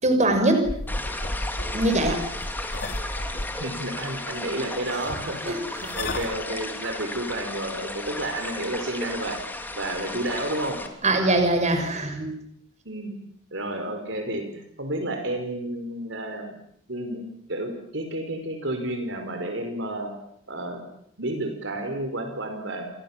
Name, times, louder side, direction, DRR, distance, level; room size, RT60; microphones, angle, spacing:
voice 1, 0.0-0.7 1.1-1.2 1.7-2.2 5.4-5.6 11.0-12.4, right 2 dB, 35° right, 6 dB, 6.1 m, -22 dB
sound 1, 0.6-3.5 5.9-6.4, left 1 dB, 50° left, 3.7 m, -32 dB
sound 2, 0.9-10.9, left 2 dB, 10° left, 3.5 m, -35 dB
voice 2, 3.5-9.4 9.8-10.8 12.9-13.2 13.5-16.6 16.9-20.1 20.5-20.9 21.2-22.9, right 1 dB, 60° right, 5 dB, 5.2 m, -31 dB
29.5 x 25.5 x 7.5 m, 0.71 s
head